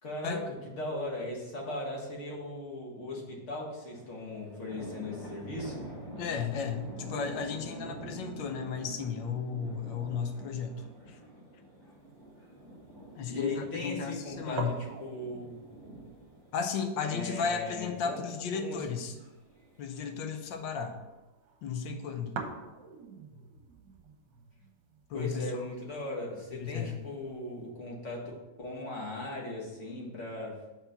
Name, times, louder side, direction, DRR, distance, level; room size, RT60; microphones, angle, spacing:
voice 1, 0.0-5.9 13.3-15.6 17.0-18.2 18.5-18.8 25.1-30.5, left 2 dB, 40° left, -2 dB, 1.8 m, -38 dB
sound 1, 3.7-20.1, right 1 dB, 15° left, 1.6 m, -47 dB
voice 2, 6.2-11.2 13.1-14.7 16.5-19.1 19.8-21.0 21.6-22.3 25.1-25.6 26.5-27.0, left 6 dB, 75° left, 6 dB, 1.5 m, -34 dB
sound 2, 11.9-27.7, right 4 dB, 70° right, 1.5 m, -48 dB
5.9 x 4.2 x 5.7 m, 1.0 s
omnidirectional pair, 2.0 m